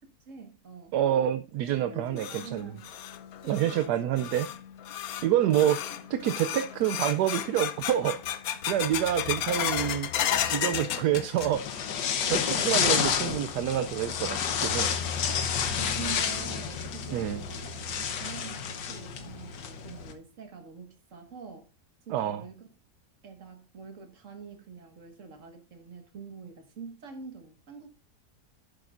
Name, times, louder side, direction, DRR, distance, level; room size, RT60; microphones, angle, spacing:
voice 1, 0.3-0.9 1.9-2.9 3.4-3.8 5.2-5.4 12.2-12.7 15.8-21.7 22.1-22.7 23.2-27.9, right 5 dB, 50° right, 1.9 m, -45 dB
voice 2, 0.9-2.7 3.5-4.5 5.2-5.8 6.1-8.2 8.7-10.1 10.5-11.6 12.3-14.9 17.1-17.4 22.1-22.4, right 11 dB, 80° right, 1.1 m, -27 dB
sound 1, 1.8-11.9 12.2-12.8 13.2-13.3 14.0-14.1 15.7-15.8 16.3-16.4 16.9-17.0 17.4-17.5 18.0-18.4, left 10 dB, 65° left, 1.1 m, -34 dB
sound 2, 11.5-20.1, left 7 dB, 90° left, 1.6 m, -30 dB
11.0 x 8.7 x 2.5 m
omnidirectional pair, 1.8 m